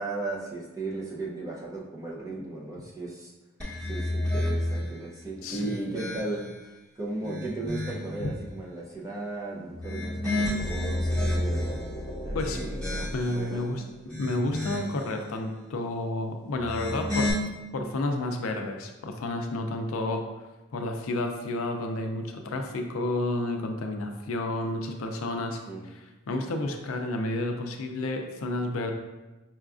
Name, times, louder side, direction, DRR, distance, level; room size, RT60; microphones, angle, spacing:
voice 1, 0.0-3.3 3.8-6.5 7.0-11.8 12.2-14.0 25.7-25.9, right 2 dB, 15° right, -4 dB, 0.5 m, -36 dB
sound 1, 3.6-4.9 5.4-6.6 7.1-8.2 9.7-11.8 12.3-13.4 13.9-15.0 16.5-17.3, left 1 dB, 5° left, 1.0 m, -31 dB
voice 2, 5.4-5.7 8.2-8.3 12.3-12.6 13.1-13.8 14.2-17.3 17.7-20.2 20.7-25.6 25.9-28.9, left 2 dB, 70° left, 4 dB, 0.4 m, -31 dB
sound 2, 10.6-14.5, equal, 30° left, 1.0 m, -36 dB
5.5 x 2.3 x 2.4 m, 1.1 s
head